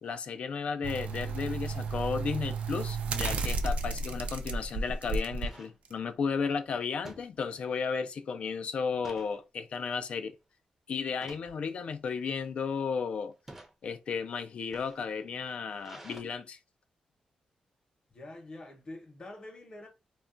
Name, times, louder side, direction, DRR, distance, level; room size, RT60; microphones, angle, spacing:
voice 1, 0.0-10.3 10.9-13.3 13.8-16.6, left 5 dB, 55° left, 0.3 m, -34 dB
sound 1, 0.8-5.5 5.9-6.0, right 4 dB, 65° right, 0.4 m, -33 dB
sound 2, 3.6-3.9 4.4-4.5 4.7-5.8 7.0-7.9 8.2-8.4 8.8-9.4 9.9-10.2 11.1-11.5 12.3-12.7 13.3-13.7 14.5-16.2, right 1 dB, 15° right, 0.6 m, -51 dB
voice 2, 18.1-19.9, left 2 dB, 35° left, 0.8 m, -46 dB
2.3 x 2.2 x 3.7 m
wide cardioid pair, 135°, 2 cm